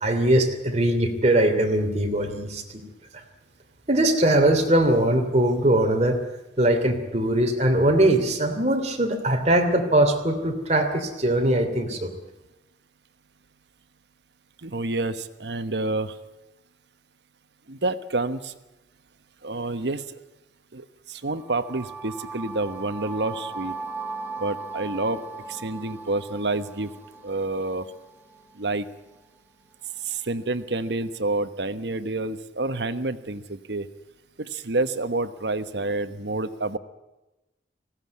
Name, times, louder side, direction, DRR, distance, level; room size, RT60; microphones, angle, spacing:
voice 1, 0.0-2.6 3.9-6.2 6.6-12.1, right 1 dB, 40° right, 4 dB, 2.8 m, -21 dB
voice 2, 14.6-16.1 17.7-18.5 19.4-20.0 20.7-23.7 24.4-26.9 27.2-27.8 28.6-28.8 30.1-33.9 34.5-36.8, right 2 dB, 70° right, 11 dB, 1.1 m, -28 dB
sound 1, 21.3-29.2, right 4 dB, 10° right, 1.8 m, -38 dB
19.0 x 16.5 x 9.6 m, 1.0 s
head